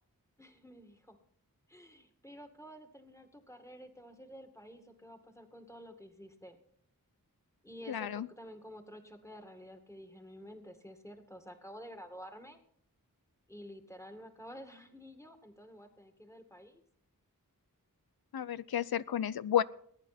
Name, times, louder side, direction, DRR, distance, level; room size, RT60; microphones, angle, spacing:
voice 1, 0.4-1.2 1.7-6.6 7.6-12.6 13.5-16.8, equal, 10° left, 5 dB, 2.1 m, -51 dB
voice 2, 7.9-8.3 18.3-19.6, left 10 dB, 90° left, 17 dB, 0.6 m, -31 dB
21.0 x 9.5 x 4.3 m, 0.63 s
wide cardioid pair, 45°, 36 cm